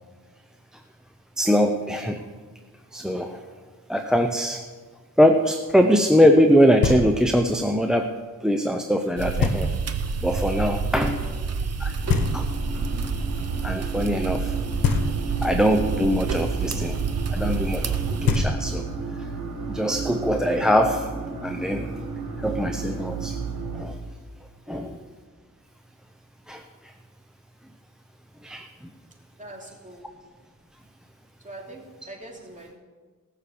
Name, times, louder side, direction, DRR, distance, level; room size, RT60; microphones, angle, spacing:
voice 1, 1.4-2.2 2.9-3.4 3.9-4.6 5.2-8.1 8.4-9.7 10.2-11.2 11.8-11.9 12.3-12.5 13.6-14.5 15.4-17.0 17.3-18.8 19.7-21.1 21.4-21.9 22.4-23.4 23.7-24.0 24.7-25.0 26.5-26.6 28.4-28.7, equal, ahead, 5 dB, 0.8 m, -22 dB
Knock, 6.8-7.5 9.4-10.1 12.1-12.9 14.8-15.6 17.9-18.0 18.3-19.1, left 4 dB, 90° left, 1.3 m, -25 dB
sound 1, 9.2-18.3, right 5 dB, 50° right, 1.1 m, -28 dB
voice 2, 10.9-11.5 24.6-25.0 29.4-30.1 31.4-32.7, right 1 dB, 20° right, -1 dB, 3.0 m, -43 dB
sound 2, 11.9-23.8, right 5 dB, 70° right, 4.5 m, -32 dB
18.5 x 6.6 x 7.0 m, 1.4 s
cardioid pair, 95°, 33 cm